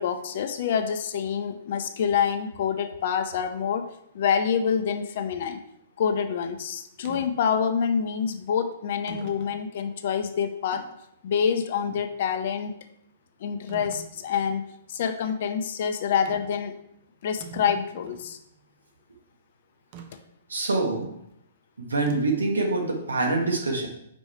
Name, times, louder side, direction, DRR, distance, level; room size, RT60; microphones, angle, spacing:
voice 1, 0.0-3.9 4.1-5.6 6.0-10.8 11.2-12.7 13.4-16.7 17.2-18.4, left 7 dB, 50° left, 9 dB, 0.6 m, -27 dB
sound 1, 7.0-7.3 8.2-8.3 9.1-9.6 10.2-10.3 13.7-14.1 16.2-16.6 16.9-17.0 17.2-18.3 19.9-20.1 22.1-22.5, right 5 dB, 40° right, 0.8 m, -42 dB
voice 2, 20.5-21.1 21.8-23.9, right 3 dB, 70° right, 2 dB, 1.3 m, -25 dB
5.2 x 4.8 x 4.4 m, 0.76 s
figure-of-eight pair, 115°, 0 cm